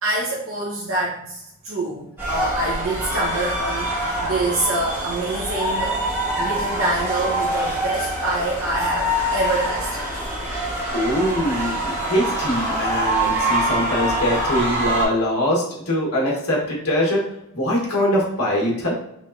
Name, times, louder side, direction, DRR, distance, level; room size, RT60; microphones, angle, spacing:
voice 1, 0.0-6.0 6.4-10.7, right 2 dB, 65° right, -6 dB, 1.0 m, -26 dB
sound 1, 2.2-15.0, right 1 dB, 10° right, 1.6 m, -24 dB
voice 2, 10.9-17.3 17.5-18.9, equal, 80° left, -3 dB, 1.5 m, -22 dB
5.3 x 3.2 x 2.6 m, 0.80 s
head